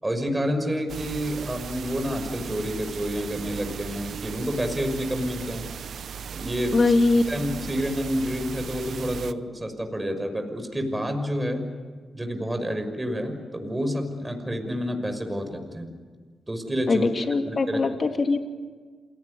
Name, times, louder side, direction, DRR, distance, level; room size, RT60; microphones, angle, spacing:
voice 1, 0.0-5.7 6.3-6.8 7.3-11.6 12.1-15.9 16.5-17.1 17.5-17.8, equal, 20° right, 6 dB, 6.0 m, -29 dB
sound 1, 0.9-9.3, right 7 dB, 65° right, 0.8 m, -37 dB
voice 2, 6.7-7.3 16.9-18.4, left 3 dB, 45° left, 6 dB, 2.9 m, -21 dB
28.5 x 18.0 x 9.8 m, 1.5 s
supercardioid pair, 45°, 0 cm